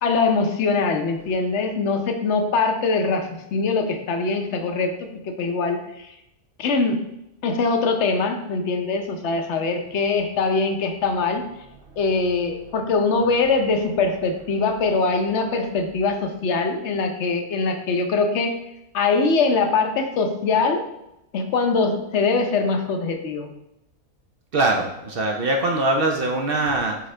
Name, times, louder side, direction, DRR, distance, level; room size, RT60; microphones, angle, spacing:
voice 1, 0.0-6.1 6.6-7.0 7.4-11.5 12.0-18.6 18.9-20.8 21.3-23.5, left 4 dB, 60° left, 5 dB, 0.9 m, -22 dB
voice 2, 24.5-27.0, right 2 dB, 55° right, 2 dB, 0.7 m, -22 dB
7.8 x 3.8 x 3.3 m, 0.87 s
omnidirectional pair, 1.6 m